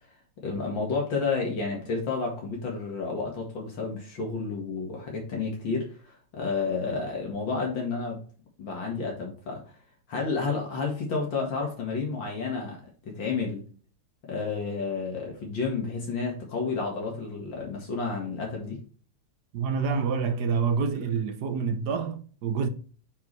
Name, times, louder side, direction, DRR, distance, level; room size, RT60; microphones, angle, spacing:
voice 1, 0.4-8.2 8.6-9.6 10.1-12.8 13.1-13.6 14.3-18.8, left 4 dB, 70° left, 2.5 m, -31 dB
voice 2, 19.5-22.7, right 5 dB, 60° right, 1.3 m, -27 dB
9.3 x 4.7 x 3.2 m
omnidirectional pair, 2.1 m